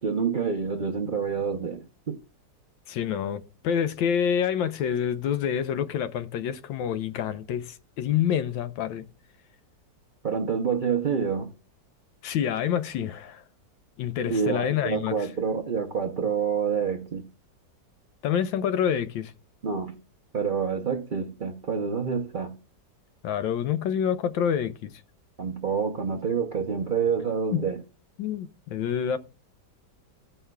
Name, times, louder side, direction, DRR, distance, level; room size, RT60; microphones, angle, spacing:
voice 1, 0.0-2.2 10.2-11.5 14.3-17.3 19.6-20.0 20.3-22.6 25.4-27.8, right 6 dB, 70° right, 0.4 m, -27 dB
voice 2, 2.9-9.1 12.2-13.4 14.0-15.3 18.2-19.3 23.2-25.0 27.5-27.7 28.2-29.2, left 8 dB, 90° left, 1.4 m, -27 dB
16.0 x 5.6 x 2.2 m
omnidirectional pair, 2.0 m